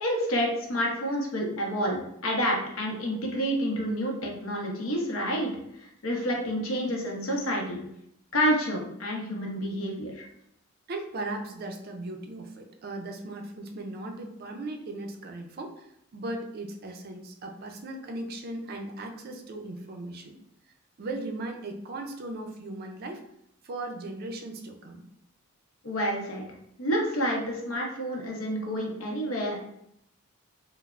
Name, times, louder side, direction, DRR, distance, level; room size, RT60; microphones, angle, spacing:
voice 1, 0.0-5.5 6.0-7.8 8.3-10.3 25.8-26.4 26.8-29.6, equal, 75° left, 0 dB, 0.7 m, -29 dB
voice 2, 10.9-15.9 16.1-20.4 21.0-23.2 23.6-25.1, right 2 dB, 45° right, 4 dB, 0.4 m, -37 dB
3.1 x 2.0 x 2.4 m, 0.75 s
head